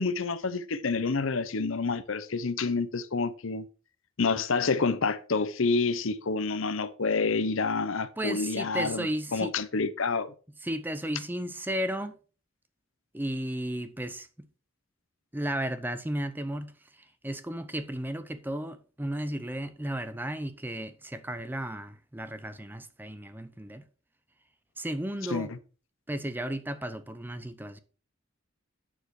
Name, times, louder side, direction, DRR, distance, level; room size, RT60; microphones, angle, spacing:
voice 1, 0.0-3.7 4.2-10.3 25.3-25.6, left 4 dB, 65° left, 0.8 m, -28 dB
voice 2, 8.2-9.5 10.6-12.1 13.1-14.5 15.3-23.9 24.8-25.5 26.1-27.8, right 1 dB, 10° right, 0.6 m, -34 dB
9.1 x 6.9 x 4.7 m
head